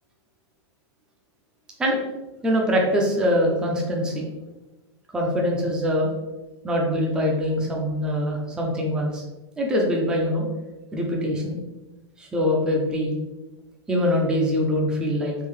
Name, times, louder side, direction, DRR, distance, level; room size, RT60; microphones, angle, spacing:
voice 1, 2.4-4.2 5.1-6.1 6.6-9.2 9.6-10.5 10.9-11.6 12.2-13.2 13.9-15.3, equal, 5° right, -1 dB, 0.4 m, -23 dB
3.6 x 2.5 x 3.1 m, 1.1 s
supercardioid pair, 155°, 15 cm